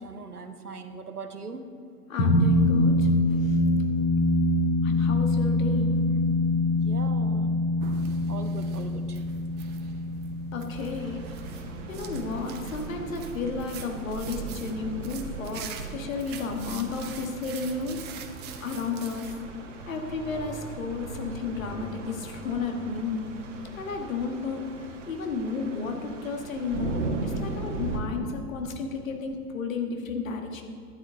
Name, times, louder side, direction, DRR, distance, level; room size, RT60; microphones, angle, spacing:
voice 1, 0.0-1.7 6.7-7.6 8.0-9.2, right 4 dB, 90° right, 8 dB, 0.9 m, -40 dB
voice 2, 2.1-3.6 4.8-6.0 10.5-11.3 11.9-18.1 18.6-19.4 19.9-23.3 23.8-24.6 25.1-30.6, left 4 dB, 60° left, 4 dB, 1.5 m, -33 dB
sound 1, 2.2-12.9, left 1 dB, 40° left, 1.7 m, -25 dB
sound 2, 7.8-19.4, right 6 dB, 25° right, 0.7 m, -44 dB
sound 3, 10.7-28.0, right 3 dB, 55° right, 1.4 m, -38 dB
12.0 x 9.6 x 3.7 m, 2.2 s
figure-of-eight pair, 100°, 45 cm